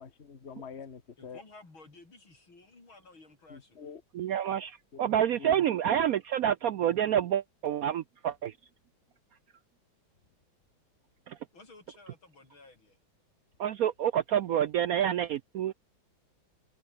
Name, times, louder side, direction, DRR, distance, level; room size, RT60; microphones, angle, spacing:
voice 1, 0.0-1.4 3.5-4.0 4.9-5.0 5.4-5.5, left 6 dB, 35° left, 1.9 m, -45 dB
voice 2, 1.2-3.8 11.5-13.0, left 3 dB, 85° left, 7.1 m, -54 dB
voice 3, 4.1-8.5 11.3-11.4 13.6-15.7, right 10 dB, 75° right, 0.8 m, -28 dB
omnidirectional pair, 2.2 m